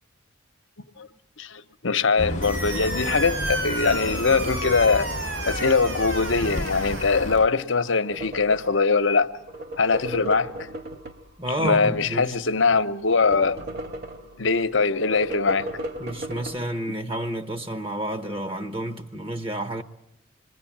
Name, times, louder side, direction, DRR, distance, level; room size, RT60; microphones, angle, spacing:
voice 1, 1.4-5.1 5.4-9.3 9.8-10.7 11.6-13.6 14.4-15.7, left 4 dB, 65° left, 1.0 m, -22 dB
sound 1, 2.2-7.5, left 1 dB, 35° left, 0.9 m, -32 dB
sound 2, 2.4-7.4, right 3 dB, 65° right, 2.7 m, -32 dB
sound 3, 8.1-8.9 9.4-12.0 12.5-14.4 15.0-16.6, right 1 dB, 50° right, 1.5 m, -36 dB
voice 2, 11.4-12.3 16.0-19.8, right 1 dB, 25° right, 1.0 m, -30 dB
27.0 x 21.0 x 8.7 m
head